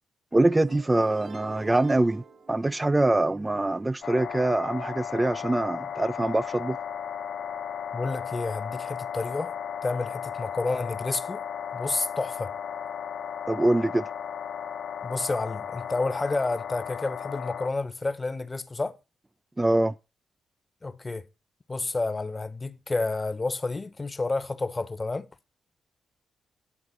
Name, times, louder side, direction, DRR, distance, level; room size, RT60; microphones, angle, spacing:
voice 1, 0.3-2.2 2.5-6.8 13.5-14.0 19.6-19.9, right 2 dB, 20° right, 0.4 m, -24 dB
sound 1, 0.6-3.4, right 5 dB, 60° right, 0.9 m, -46 dB
sound 2, 4.0-17.7, left 8 dB, 65° left, 0.8 m, -35 dB
voice 2, 7.9-9.5 9.8-11.4 11.7-12.5 15.0-19.0 20.8-21.3 21.7-25.3, left 3 dB, 30° left, 0.9 m, -30 dB
9.9 x 3.9 x 6.1 m
hypercardioid pair, 45°, 0 cm